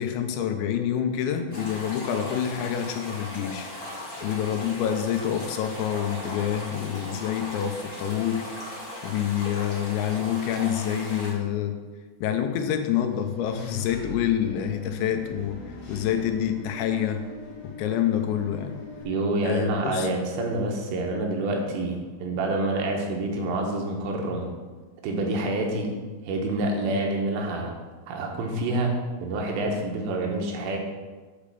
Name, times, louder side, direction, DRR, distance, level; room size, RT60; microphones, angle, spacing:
voice 1, 0.0-3.7 4.2-8.4 9.0-11.8 12.2-15.6 15.9-17.2 17.6-18.8 19.5-20.1, left 9 dB, 80° left, 6 dB, 3.0 m, -27 dB
sound 1, 1.5-11.3, left 1 dB, 25° left, 0.8 m, -38 dB
Engine / Mechanisms, 13.1-19.0, left 1 dB, 50° left, 2.6 m, -42 dB
voice 2, 19.0-24.5 25.0-25.9 26.2-27.7 28.1-30.8, right 2 dB, 75° right, 1 dB, 3.4 m, -27 dB
8.7 x 5.1 x 6.8 m, 1.3 s
omnidirectional pair, 5.2 m